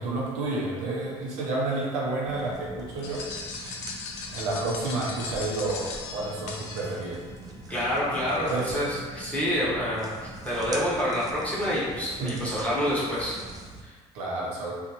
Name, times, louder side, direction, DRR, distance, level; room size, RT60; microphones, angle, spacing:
voice 1, 0.0-3.3 4.3-7.2 8.3-8.8 12.2-12.5 14.1-14.8, right 2 dB, 85° right, -4 dB, 0.7 m, -30 dB
sound 1, 2.2-13.8, right 3 dB, 30° right, 0.4 m, -43 dB
sound 2, 3.0-7.3, left 4 dB, 80° left, 0.5 m, -38 dB
voice 2, 7.7-13.4 13.8-13.9, equal, 10° left, -9 dB, 1.0 m, -28 dB
2.6 x 2.4 x 2.8 m, 1.5 s
cardioid pair, 100°, 12 cm